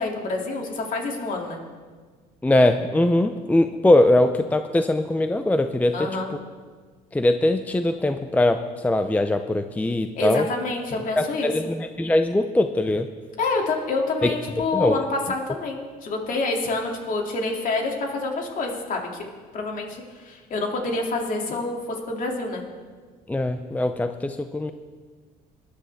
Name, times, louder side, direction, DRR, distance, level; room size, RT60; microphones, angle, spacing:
voice 1, 0.0-1.6 5.9-6.3 10.1-11.5 13.4-19.3 19.5-21.8 22.1-22.6, left 3 dB, 55° left, 1 dB, 2.7 m, -27 dB
voice 2, 2.4-6.1 7.1-10.5 11.2-13.1 14.2-14.3 14.7-15.0 23.3-24.7, left 1 dB, 10° left, 8 dB, 0.5 m, -21 dB
21.0 x 11.5 x 3.5 m, 1.5 s
cardioid pair, 110°, 17 cm